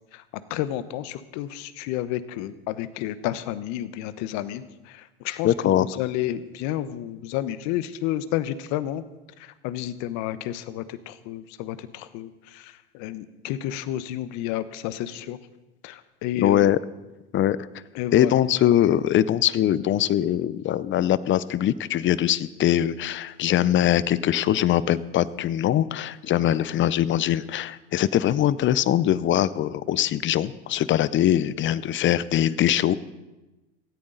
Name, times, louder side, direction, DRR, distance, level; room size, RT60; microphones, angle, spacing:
voice 1, 0.5-9.0 9.4-15.4 15.8-16.7 17.9-18.3, left 13 dB, 60° left, 14 dB, 1.0 m, -31 dB
voice 2, 5.4-5.9 16.4-16.8 17.3-17.6 18.1-33.0, left 11 dB, 40° left, 18 dB, 0.6 m, -22 dB
18.0 x 13.5 x 3.9 m, 1.1 s
hypercardioid pair, 95°, 32 cm